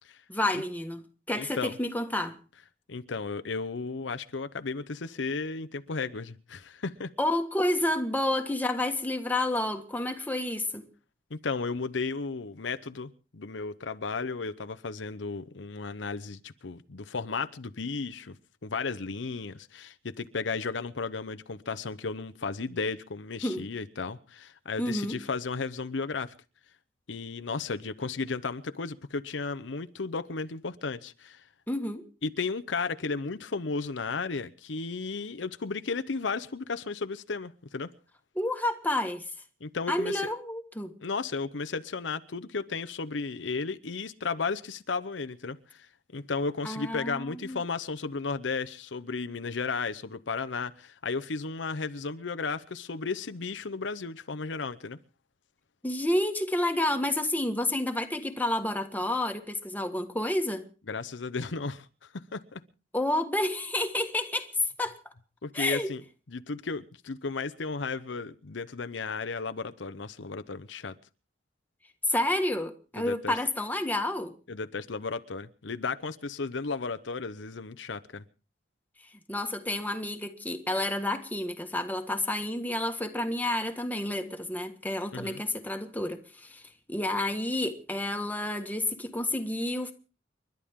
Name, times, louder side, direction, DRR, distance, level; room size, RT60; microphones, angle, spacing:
voice 1, 0.3-2.4 7.2-10.8 23.4-23.7 24.8-25.2 31.7-32.0 38.3-39.2 39.9-40.9 46.6-47.6 55.8-60.7 62.9-64.5 64.8-65.0 65.5-65.9 72.1-74.3 79.3-86.6 86.9-89.9, left 1 dB, 10° left, 1.6 m, -30 dB
voice 2, 1.4-1.8 2.9-7.1 11.3-18.4 18.6-26.3 27.1-31.4 32.2-37.9 39.6-40.3 41.0-55.0 60.9-61.9 62.3-62.6 65.4-66.0 66.3-70.9 73.0-73.4 74.5-78.2 85.1-85.4, left 4 dB, 90° left, 0.8 m, -34 dB
30.0 x 12.0 x 3.7 m
head